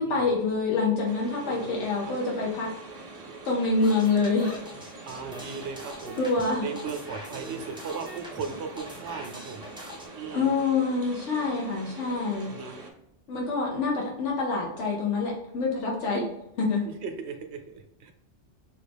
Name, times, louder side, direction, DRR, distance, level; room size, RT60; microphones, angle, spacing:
voice 1, 0.0-2.7 3.4-4.6 4.9-5.1 6.2-6.7 10.3-12.5 13.3-16.3 16.6-16.8, left 3 dB, 75° left, -2 dB, 1.1 m, -26 dB
sound 1, 1.0-12.9, right 3 dB, 40° right, 0.7 m, -44 dB
voice 2, 1.4-2.1 5.1-6.2 6.6-9.7 10.1-10.5 12.4-12.8 17.0-18.1, right 5 dB, 70° right, 5 dB, 0.9 m, -37 dB
sound 2, 3.8-10.1, equal, 5° right, 0.6 m, -43 dB
5.1 x 2.4 x 3.4 m, 0.85 s
omnidirectional pair, 1.2 m